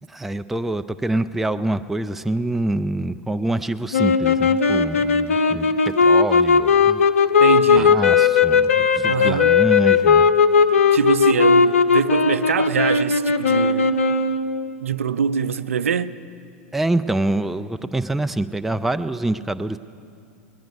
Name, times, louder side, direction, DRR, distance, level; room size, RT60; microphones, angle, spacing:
voice 1, 0.1-7.0 7.8-10.3 16.7-19.8, right 2 dB, 5° right, 0.3 m, -25 dB
sound 1, 3.9-14.7, left 5 dB, 85° left, 0.5 m, -17 dB
voice 2, 7.4-8.0 9.1-9.6 10.9-13.9 14.8-16.2, right 7 dB, 90° right, 0.4 m, -23 dB
19.0 x 10.5 x 5.3 m
hypercardioid pair, 100°, 7 cm